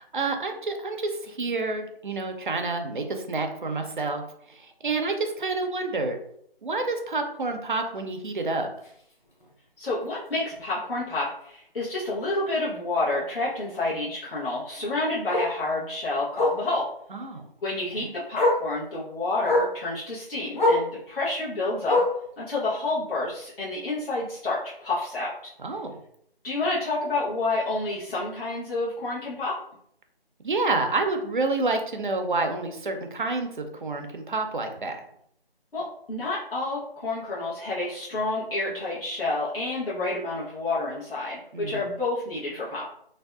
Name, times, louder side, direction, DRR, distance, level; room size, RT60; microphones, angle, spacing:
voice 1, 0.0-4.2 4.8-6.2 6.6-8.7 17.1-17.4 18.0-18.1 25.6-26.0 30.4-35.0 41.5-41.8, right 3 dB, 55° right, 5 dB, 0.4 m, -28 dB
Bark, 8.8-9.0 9.4-9.5 9.9-10.0 10.3-10.4 11.8-11.9 14.4-14.5 15.3-15.5 16.3-16.6 17.8-17.9 18.3-18.7 19.4-19.8 20.5-20.9 21.8-22.3 23.2-23.3, left 2 dB, 50° left, 0.7 m, -23 dB
voice 2, 9.8-16.9 17.6-22.0 22.4-25.3 26.4-29.6 35.7-42.8, left 2 dB, 70° left, -8 dB, 1.0 m, -29 dB
2.6 x 2.2 x 2.2 m, 0.70 s
figure-of-eight pair, 175°, 30 cm